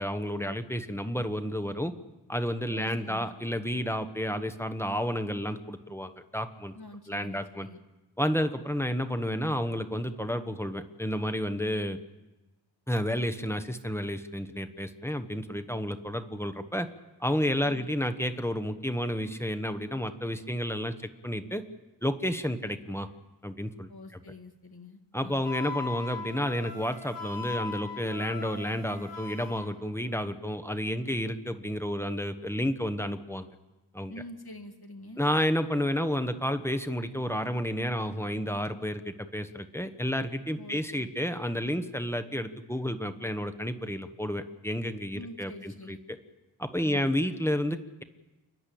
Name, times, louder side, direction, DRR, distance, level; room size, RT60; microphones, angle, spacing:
voice 1, 0.0-1.9 2.3-6.7 7.1-7.7 8.2-12.0 12.9-16.9 17.2-20.9 21.2-21.6 22.0-23.1 23.4-23.9 25.1-33.5 33.9-34.1 35.2-46.0 46.6-48.0, equal, 5° left, 9 dB, 1.3 m, -31 dB
voice 2, 2.7-3.3 6.7-7.8 17.6-17.9 23.9-25.4 34.1-35.3 40.6-41.0 45.1-46.0 46.8-47.1, left 2 dB, 60° left, 5 dB, 2.2 m, -46 dB
Wind instrument woodwind instrument, 25.4-29.6, left 4 dB, 75° left, 3.8 m, -39 dB
29.5 x 11.0 x 8.6 m, 1.1 s
wide cardioid pair, 55°, 43 cm